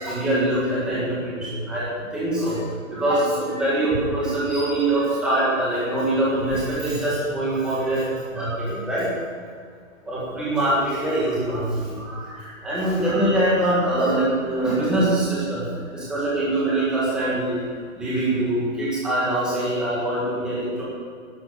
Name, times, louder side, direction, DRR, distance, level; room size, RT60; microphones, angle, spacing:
voice 1, 0.0-2.6 2.9-8.0 8.3-9.1 10.0-15.7 15.9-17.6 18.0-20.8, right 1 dB, ahead, -8 dB, 1.6 m, -23 dB
11.5 x 11.5 x 6.6 m, 2.1 s
hypercardioid pair, 180°, 40 cm